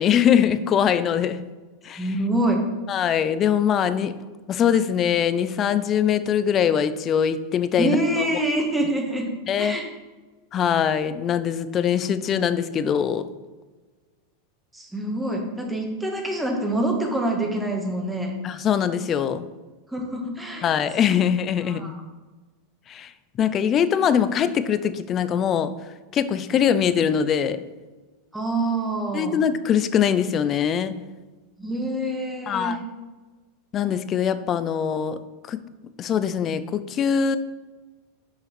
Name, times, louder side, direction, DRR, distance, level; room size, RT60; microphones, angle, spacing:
voice 1, 0.0-1.4 1.8-2.1 2.9-4.2 4.5-8.3 9.5-9.8 10.5-13.3 18.4-19.5 20.6-22.0 22.9-23.1 23.4-25.7 26.1-27.6 29.1-30.9 32.5-32.8 33.7-35.2 35.5-35.6 36.0-37.4, left 8 dB, 30° left, 13 dB, 0.5 m, -22 dB
voice 2, 2.0-2.6 7.8-9.3 9.6-9.9 14.7-18.3 19.9-20.8 21.0-21.2 21.7-22.0 28.3-29.4 31.6-32.8, right 1 dB, 5° right, 1 dB, 1.6 m, -26 dB
6.5 x 5.8 x 6.0 m, 1.3 s
supercardioid pair, 130°, 0 cm